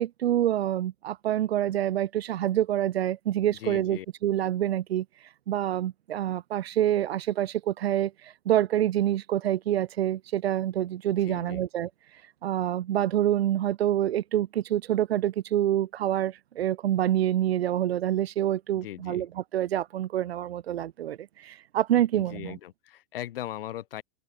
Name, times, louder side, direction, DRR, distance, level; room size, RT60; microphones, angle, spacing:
voice 1, 0.0-5.1 5.5-8.1 8.5-11.9 12.4-19.3 19.5-22.6, right 12 dB, 85° right, 4.0 m, -26 dB
voice 2, 3.5-4.1 11.2-11.6 18.7-19.3 22.1-24.0, left 13 dB, 65° left, 7.7 m, -39 dB
supercardioid pair, 180°, 30 cm